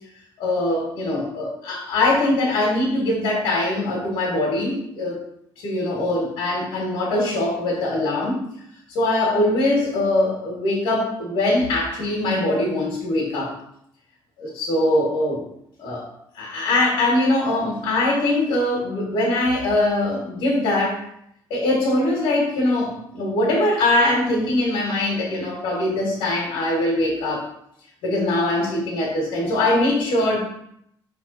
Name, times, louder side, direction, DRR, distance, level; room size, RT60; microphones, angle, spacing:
voice 1, 0.4-5.2 5.6-8.4 8.9-13.5 14.4-15.5 15.8-16.1 16.3-21.0 21.5-27.5 28.0-30.4, left 1 dB, 75° left, -3 dB, 2.0 m, -22 dB
5.8 x 4.0 x 4.3 m, 0.73 s
cardioid pair, 175°, 8 cm